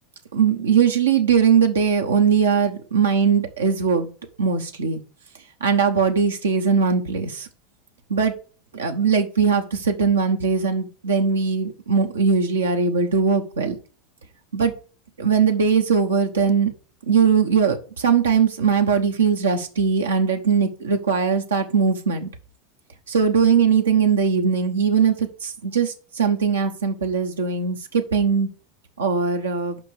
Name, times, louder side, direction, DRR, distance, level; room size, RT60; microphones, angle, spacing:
voice 1, 0.3-4.1 4.4-5.0 5.6-7.5 8.1-8.3 8.7-13.8 14.5-14.7 15.2-16.7 17.1-22.3 23.1-28.5 29.0-29.8, right 6 dB, 90° right, 3 dB, 1.0 m, -20 dB
5.3 x 5.1 x 6.3 m, 0.38 s
hypercardioid pair, 90°, 0 cm